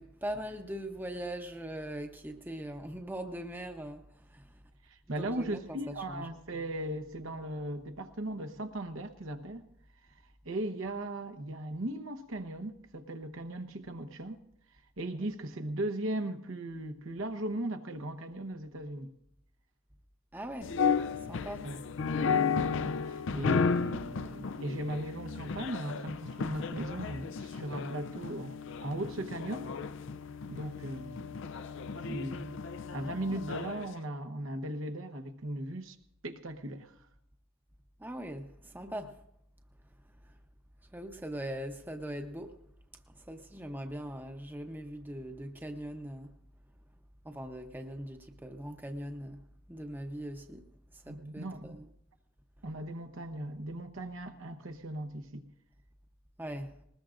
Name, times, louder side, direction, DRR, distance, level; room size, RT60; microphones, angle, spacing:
voice 1, 0.0-4.0 4.3-4.4 5.1-6.3 20.3-20.7 21.3-21.7 33.3-33.4 38.0-39.1 40.9-42.5 43.3-46.3 47.2-49.4 49.7-50.6 51.1-51.9 56.4-56.7, right 1 dB, 10° right, 0.8 m, -40 dB
voice 2, 4.8-9.7 10.1-14.4 15.0-19.1 21.6-21.8 22.1-29.7 30.5-31.4 32.1-32.5 32.9-36.0 36.2-36.9 51.1-51.8 52.6-55.4, right 1 dB, 70° right, 1.0 m, -38 dB
sound 1, 20.6-33.9, left 5 dB, 60° left, 0.4 m, -34 dB
20.5 x 20.0 x 2.5 m
head